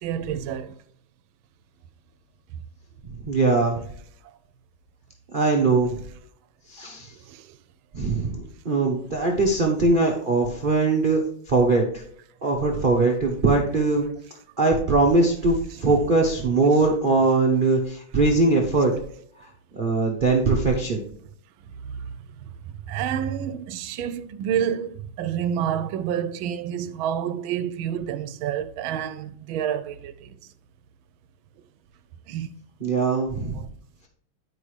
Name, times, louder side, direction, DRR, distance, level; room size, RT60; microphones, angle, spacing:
voice 1, 0.0-0.7 7.3-7.4 22.9-30.4 32.3-32.5, right 9 dB, 80° right, 1.3 m, -28 dB
voice 2, 3.3-3.8 5.3-6.0 6.7-7.1 7.9-11.8 12.4-14.1 14.6-18.9 19.4-21.0 32.8-33.6, right 3 dB, 45° right, 0.6 m, -21 dB
9.7 x 5.3 x 3.2 m
omnidirectional pair, 2.3 m